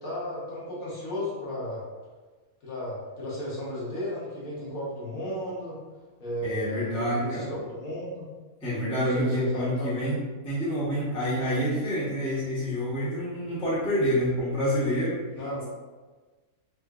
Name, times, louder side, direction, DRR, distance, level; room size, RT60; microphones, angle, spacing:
voice 1, 0.0-1.8 2.6-5.8 6.2-8.3 8.9-9.9 15.4-15.6, left 1 dB, 75° left, -7 dB, 1.4 m, -34 dB
voice 2, 6.4-7.5 8.6-10.2 10.4-15.2, equal, 5° left, -10 dB, 0.7 m, -27 dB
3.6 x 2.3 x 2.3 m, 1.3 s
omnidirectional pair, 1.5 m